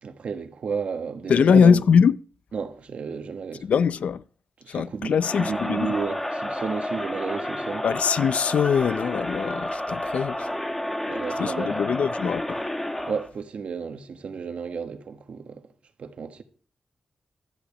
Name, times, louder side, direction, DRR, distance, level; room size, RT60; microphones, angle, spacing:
voice 1, 0.0-1.8 2.5-3.7 4.6-7.8 11.1-11.8 13.0-15.6 16.0-16.4, right 5 dB, 65° right, 1.4 m, -32 dB
voice 2, 1.3-2.2 3.6-4.2 4.7-5.9 7.8-10.5 11.4-12.6, left 6 dB, 75° left, 0.4 m, -22 dB
Crowd, 5.2-13.3, left 1 dB, 10° left, 1.1 m, -30 dB
13.0 x 5.1 x 8.4 m
wide cardioid pair, 140°, 2 cm